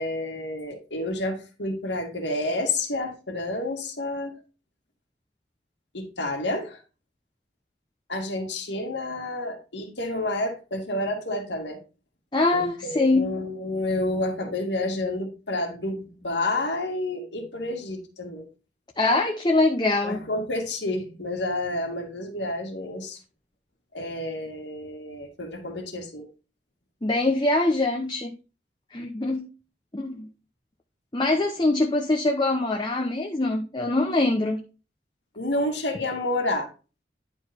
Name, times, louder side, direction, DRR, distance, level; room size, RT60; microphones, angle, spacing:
voice 1, 0.0-4.4 5.9-6.8 8.1-11.8 12.5-18.5 20.0-23.2 23.9-26.3 35.4-36.7, left 2 dB, 85° left, 2.6 m, -29 dB
voice 2, 12.3-13.3 19.0-20.2 27.0-28.3 28.9-29.5 29.9-30.3 31.1-34.6, left 2 dB, 25° left, 0.9 m, -23 dB
11.0 x 4.6 x 4.5 m
head